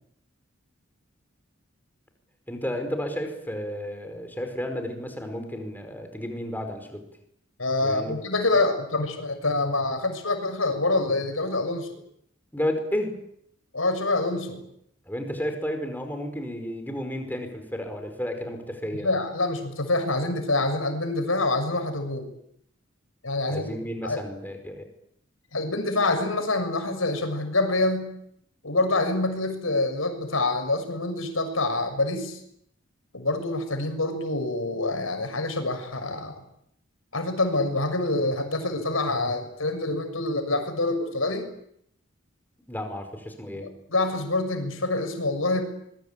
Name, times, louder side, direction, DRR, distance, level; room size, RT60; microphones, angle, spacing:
voice 1, 2.5-7.0 7.8-8.1 12.5-13.1 15.1-19.1 23.4-24.8 42.7-43.7, equal, 10° left, 6 dB, 5.0 m, -32 dB
voice 2, 7.6-11.9 13.7-14.6 19.0-22.3 23.2-23.7 24.0-24.2 25.5-28.1 28.6-32.4 33.1-36.4 37.1-41.5 43.5-45.6, left 2 dB, 85° left, 6 dB, 6.6 m, -26 dB
25.0 x 22.0 x 8.8 m, 0.73 s
head